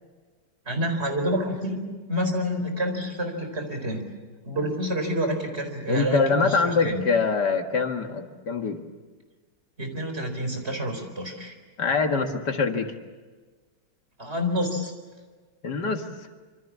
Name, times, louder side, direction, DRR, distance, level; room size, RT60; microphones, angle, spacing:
voice 1, 0.7-4.1 4.4-7.0 9.8-11.5 14.2-14.9, equal, 35° right, 5 dB, 4.6 m, -28 dB
voice 2, 5.9-8.8 11.8-12.9 15.6-16.0, left 4 dB, 65° left, 5 dB, 2.3 m, -24 dB
26.5 x 26.0 x 7.4 m, 1.4 s
omnidirectional pair, 1.9 m